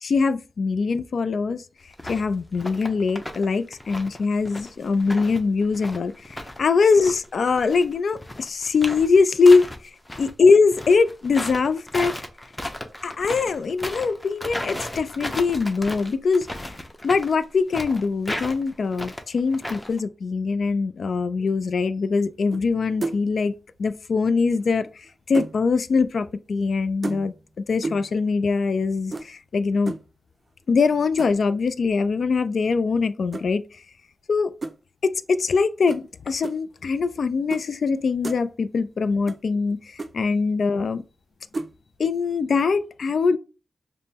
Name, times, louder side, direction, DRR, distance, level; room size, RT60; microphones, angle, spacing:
voice 1, 0.0-1.6 2.1-9.7 10.2-12.1 13.0-16.5 17.0-23.5 23.8-24.9 25.3-27.3 27.7-29.9 30.7-33.6 34.3-34.5 35.0-41.0 42.0-43.4, left 4 dB, 70° left, 0.3 m, -22 dB
sound 1, 1.9-2.2 2.5-3.5 3.7-6.6 6.9-10.3 10.7-20.0, left 1 dB, 15° left, 0.6 m, -35 dB
sound 2, 22.5-22.7 23.0-23.4 24.6-25.6 27.0-27.5 27.8-28.2 29.1-29.3 29.9-30.1 31.2-31.5 33.3-33.5 34.6-34.8 35.9-36.0 36.4-36.6 37.5-37.6 38.0-38.4 39.3-39.4 39.7-39.8 40.0-40.1 41.5-41.7, right 3 dB, 45° right, 0.4 m, -32 dB
5.2 x 2.1 x 2.8 m
cardioid pair, 65°, 0 cm